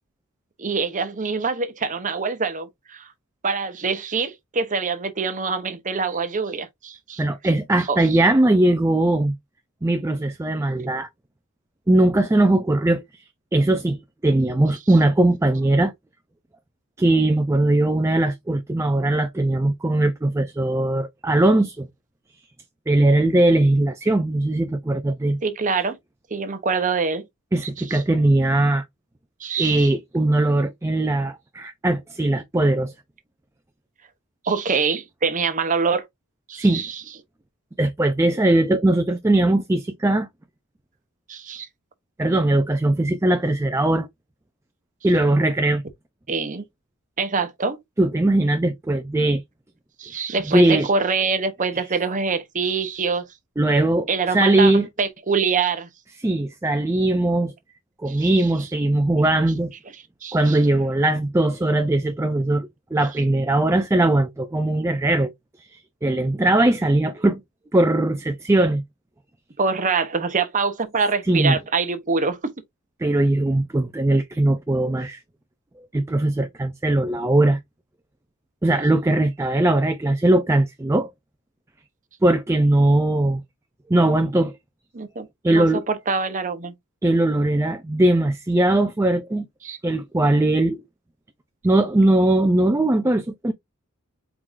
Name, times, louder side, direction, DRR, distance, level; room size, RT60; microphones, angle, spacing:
voice 1, 0.6-3.1 3.4-7.2 7.9-8.2 25.4-26.0 26.3-27.2 27.9-28.0 29.4-29.9 34.4-36.0 36.5-37.0 41.3-41.7 46.3-46.6 47.2-47.8 50.0-53.2 54.1-55.9 58.1-58.3 60.2-60.6 69.6-72.5 84.9-86.7 89.6-89.8, right 4 dB, 35° right, 0.8 m, -25 dB
voice 2, 7.2-9.3 9.8-11.1 11.9-13.0 13.5-15.9 17.0-21.9 22.9-25.4 27.5-28.8 29.6-32.9 36.6-36.8 37.8-40.3 42.2-44.1 45.0-45.8 48.0-49.4 50.5-50.9 53.6-54.9 56.2-57.5 58.0-59.7 60.3-65.3 65.6-67.4 67.7-68.8 71.2-71.6 73.0-75.2 75.9-77.6 78.6-81.1 82.2-83.4 83.9-84.6 85.4-85.9 87.0-89.5 89.8-90.8 91.6-93.5, right 1 dB, 10° right, 0.4 m, -20 dB
4.6 x 3.7 x 2.5 m
head